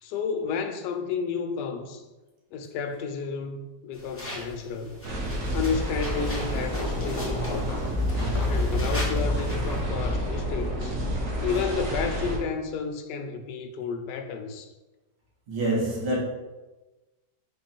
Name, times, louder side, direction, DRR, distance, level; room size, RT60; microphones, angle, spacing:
voice 1, 0.0-2.0 2.5-5.0 5.5-7.8 8.5-10.9 11.4-14.7, left 5 dB, 90° left, 6 dB, 1.2 m, -31 dB
sound 1, 3.9-9.8, left 1 dB, 10° left, 0.8 m, -41 dB
sound 2, 5.0-12.4, equal, 55° right, 1.3 m, -28 dB
sound 3, 6.5-9.6, left 2 dB, 65° left, 1.3 m, -37 dB
voice 2, 15.5-16.2, right 1 dB, 80° right, -4 dB, 1.9 m, -26 dB
4.1 x 3.0 x 4.3 m, 1.1 s
omnidirectional pair, 1.8 m